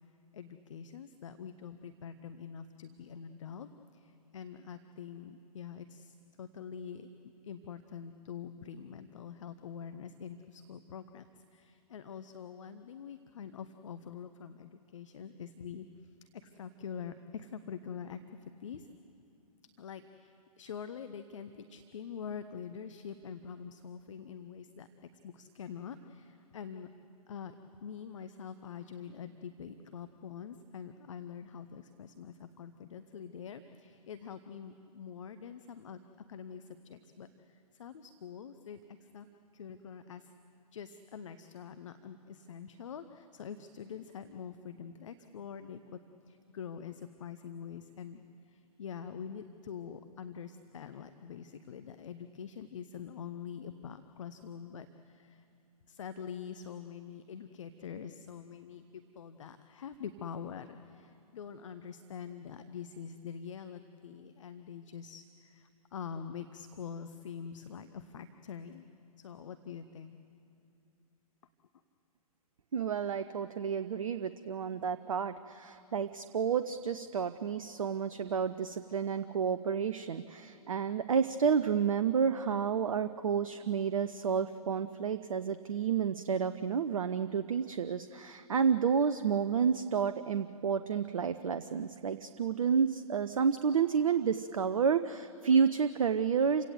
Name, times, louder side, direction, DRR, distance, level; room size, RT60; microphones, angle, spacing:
voice 1, 0.3-7.1 7.4-11.2 11.5-15.9 16.2-18.2 18.6-18.9 19.8-24.9 25.2-26.9 27.3-27.5 27.8-36.0 36.3-39.3 39.5-40.3 40.7-46.0 46.3-55.4 55.9-68.9 69.2-70.2, left 7 dB, 55° left, 9 dB, 0.9 m, -45 dB
voice 2, 72.7-96.6, right 6 dB, 60° right, 11 dB, 0.7 m, -30 dB
28.5 x 17.0 x 8.0 m, 2.6 s
figure-of-eight pair, 115°, 19 cm